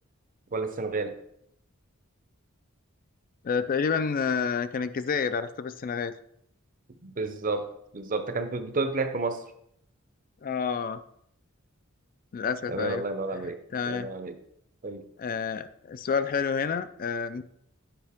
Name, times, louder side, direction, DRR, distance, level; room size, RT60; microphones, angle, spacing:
voice 1, 0.5-1.2 7.0-9.4 12.7-13.6 13.8-14.3 14.8-15.1, right 3 dB, 40° right, 9 dB, 0.7 m, -31 dB
voice 2, 3.4-6.1 10.4-11.0 12.3-13.0 13.4-14.1 15.2-17.4, left 6 dB, 40° left, 12 dB, 0.4 m, -29 dB
8.8 x 4.9 x 3.5 m, 0.72 s
head